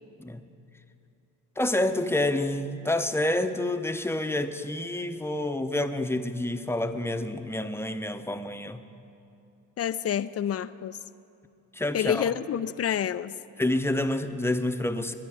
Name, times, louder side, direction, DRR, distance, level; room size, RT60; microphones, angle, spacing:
voice 1, 1.6-8.8 11.7-12.2 13.6-15.1, left 1 dB, 5° left, 8 dB, 0.8 m, -28 dB
voice 2, 9.8-11.0 11.9-13.4, left 9 dB, 30° left, 15 dB, 0.5 m, -28 dB
20.5 x 10.5 x 4.9 m, 2.6 s
hypercardioid pair, 60°, 49 cm